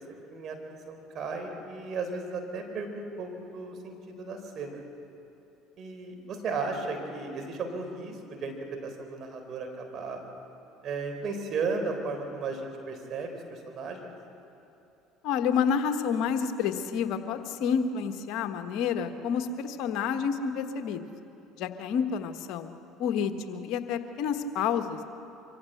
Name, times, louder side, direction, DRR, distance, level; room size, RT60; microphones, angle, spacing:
voice 1, 0.1-4.8 5.8-8.5 8.8-10.2 10.8-14.1, right 4 dB, 50° right, 4 dB, 3.9 m, -35 dB
voice 2, 15.2-21.0 21.6-22.7 23.0-25.0, left 7 dB, 65° left, 8 dB, 1.4 m, -29 dB
24.5 x 15.5 x 8.0 m, 2.7 s
hypercardioid pair, 70°, 0 cm